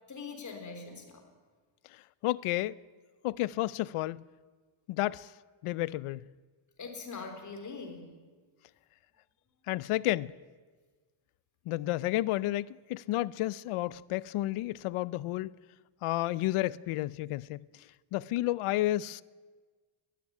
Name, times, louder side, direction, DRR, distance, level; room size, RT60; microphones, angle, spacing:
voice 1, 0.1-1.2 6.8-8.1, left 4 dB, 35° left, 4.0 m, -42 dB
voice 2, 1.9-2.8 3.2-4.2 4.9-5.3 5.6-6.2 9.7-10.3 11.7-15.5 16.0-17.6 18.1-19.2, left 16 dB, 85° left, 0.7 m, -31 dB
21.5 x 14.0 x 10.0 m
cardioid pair, 145°, 50 cm